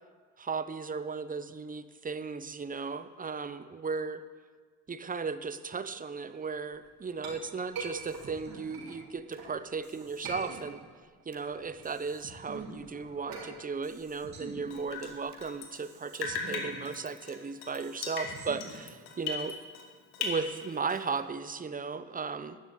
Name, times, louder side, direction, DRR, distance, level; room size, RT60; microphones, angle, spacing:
voice 1, 0.4-4.2 4.9-10.8 11.3-19.6 20.2-22.6, right 5 dB, 20° right, 12 dB, 0.7 m, -36 dB
Chink clink, 6.7-9.6 10.0-11.0 11.4-15.5, right 3 dB, 65° right, 3.7 m, -45 dB
sound 1, 7.9-9.5 9.8-11.5 11.8-13.5 13.8-15.5 15.8-17.5 17.8-19.5, right 3 dB, 50° right, 2.3 m, -49 dB
Drip, 14.7-19.9 20.1-21.2, left 5 dB, 90° left, 1.5 m, -38 dB
11.5 x 6.8 x 8.2 m, 1.5 s
supercardioid pair, 70°, 37 cm